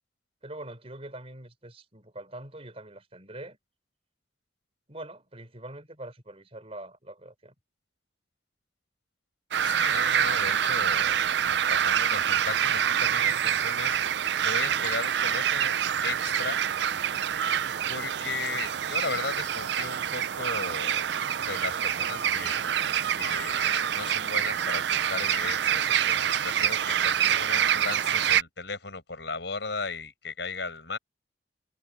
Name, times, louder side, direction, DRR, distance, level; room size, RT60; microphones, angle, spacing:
voice 1, 0.4-3.6 4.9-7.5, right 1 dB, 35° right, 4.8 m, -43 dB
sound 1, 9.5-28.4, right 9 dB, 65° right, 0.4 m, -26 dB
voice 2, 9.6-14.0 14.4-15.8 16.0-16.6 17.9-21.0 21.5-22.6 23.1-31.0, left 4 dB, 70° left, 7.9 m, -36 dB
head